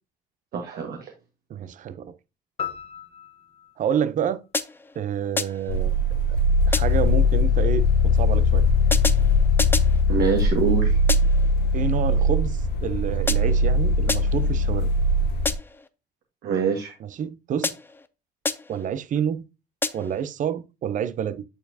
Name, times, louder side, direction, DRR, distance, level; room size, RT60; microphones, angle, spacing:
voice 1, 0.5-1.1 10.1-11.0 16.4-16.9, right 6 dB, 65° right, 1.5 m, -25 dB
voice 2, 1.5-2.1 3.8-4.4 4.9-5.9 6.7-8.7 11.7-14.9 17.0-17.8 18.7-19.5 19.9-21.4, right 8 dB, 50° right, 0.6 m, -28 dB
sound 1, 2.6-5.1, left 8 dB, 35° left, 1.3 m, -38 dB
sound 2, 4.5-5.0 5.4-5.8 6.7-7.2 8.9-10.0 11.1-11.5 13.3-13.7 14.1-14.5 15.5-15.9 17.6-18.1 18.5-18.9 19.8-20.2, left 3 dB, 15° left, 0.5 m, -29 dB
sound 3, 5.7-15.5, left 2 dB, 80° left, 0.7 m, -20 dB
9.0 x 4.5 x 2.7 m
cardioid pair, 110°, 17 cm